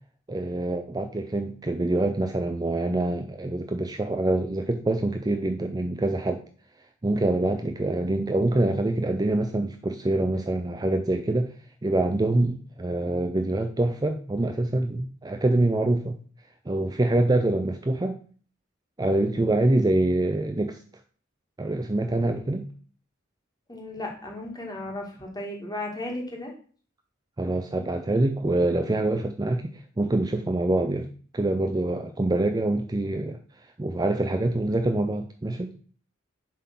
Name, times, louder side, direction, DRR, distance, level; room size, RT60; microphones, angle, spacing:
voice 1, 0.3-6.4 7.0-11.5 11.8-16.2 16.7-18.2 19.0-20.8 21.6-22.7 27.4-29.7 30.0-31.1 31.3-33.4 33.8-35.7, right 2 dB, 20° right, 6 dB, 0.5 m, -25 dB
voice 2, 23.7-26.5, left 1 dB, 20° left, 0 dB, 1.8 m, -35 dB
7.4 x 3.7 x 5.8 m, 0.43 s
head